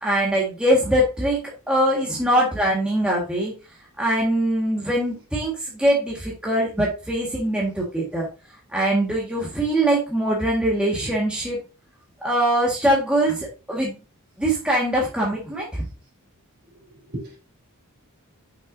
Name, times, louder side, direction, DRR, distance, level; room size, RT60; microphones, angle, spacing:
voice 1, 0.0-3.5 4.0-8.3 8.7-11.6 12.2-13.9 14.4-15.8, right 1 dB, 5° right, -4 dB, 1.6 m, -22 dB
voice 2, 16.8-17.4, right 1 dB, 45° right, -1 dB, 3.7 m, -36 dB
6.8 x 6.0 x 2.6 m, 0.30 s
head